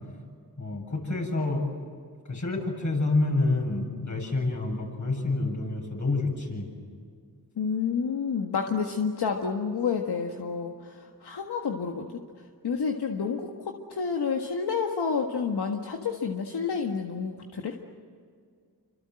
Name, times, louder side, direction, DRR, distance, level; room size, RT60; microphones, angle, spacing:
voice 1, 0.6-1.7 2.3-6.7, left 2 dB, 50° left, 1 dB, 7.9 m, -28 dB
voice 2, 7.6-12.2 12.6-17.8, left 5 dB, 80° left, 2 dB, 1.8 m, -29 dB
28.0 x 25.5 x 7.8 m, 2.1 s
cardioid pair, 60°, 39 cm